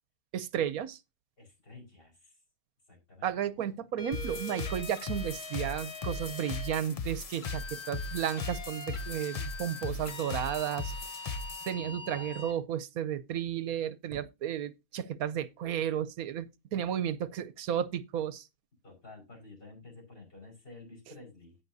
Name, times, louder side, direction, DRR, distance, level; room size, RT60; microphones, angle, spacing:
voice 1, 0.3-1.0 3.2-10.9 11.7-18.5, right 10 dB, 75° right, 1.1 m, -33 dB
voice 2, 1.4-2.4 2.9-3.3 9.6-10.1 11.6-12.6 18.8-21.6, left 3 dB, 35° left, 5.4 m, -52 dB
sound 1, 4.0-6.9 7.4-12.6, left 3 dB, 85° left, 1.9 m, -43 dB
sound 2, 4.1-11.7, left 3 dB, 65° left, 0.3 m, -38 dB
16.5 x 5.8 x 2.6 m
omnidirectional pair, 1.6 m